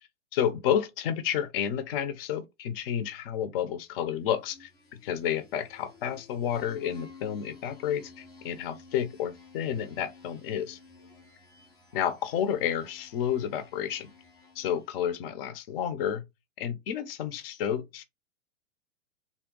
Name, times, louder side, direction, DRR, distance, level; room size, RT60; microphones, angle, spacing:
voice 1, 0.3-10.8 11.9-14.1 14.6-16.2 16.6-18.0, left 9 dB, 45° left, 0.7 m, -30 dB
sound 1, 4.3-15.2, left 3 dB, 10° left, 0.4 m, -54 dB
3.5 x 2.2 x 3.7 m
hypercardioid pair, 130°, 39 cm